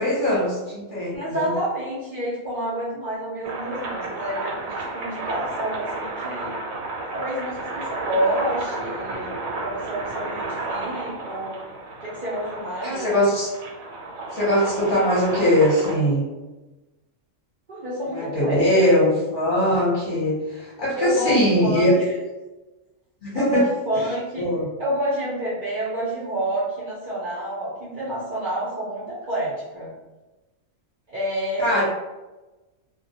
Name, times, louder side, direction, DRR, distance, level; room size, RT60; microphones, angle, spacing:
voice 1, 0.0-1.5 12.8-13.5 14.3-16.3 18.1-21.9 23.2-23.6 24.4-24.7 31.6-31.8, left 1 dB, 45° left, -7 dB, 0.7 m, -21 dB
voice 2, 1.1-6.6 7.1-11.6 12.0-13.3 17.7-18.6 18.9-19.0 21.0-22.1 23.3-24.5 24.8-29.9 31.1-31.8, right 1 dB, 55° right, -9 dB, 0.5 m, -28 dB
sound 1, 3.4-15.9, right 2 dB, 80° right, 1.0 m, -32 dB
2.2 x 2.1 x 2.7 m, 1.1 s
omnidirectional pair, 1.4 m